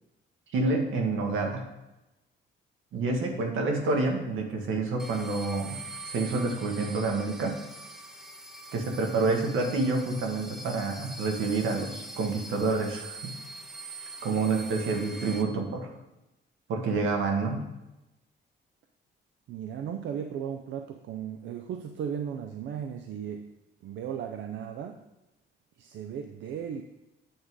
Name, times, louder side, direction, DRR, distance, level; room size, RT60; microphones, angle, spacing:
voice 1, 0.5-1.7 2.9-5.8 6.1-7.6 8.7-13.3 14.2-15.9 16.7-17.6, right 3 dB, 90° right, 2 dB, 1.4 m, -28 dB
sound 1, 5.0-15.4, right 2 dB, ahead, 0.4 m, -43 dB
voice 2, 19.5-23.4 23.8-25.0 25.8-26.8, right 8 dB, 70° right, 5 dB, 0.5 m, -36 dB
8.7 x 3.7 x 4.7 m, 0.95 s
cardioid pair, 155°, 20 cm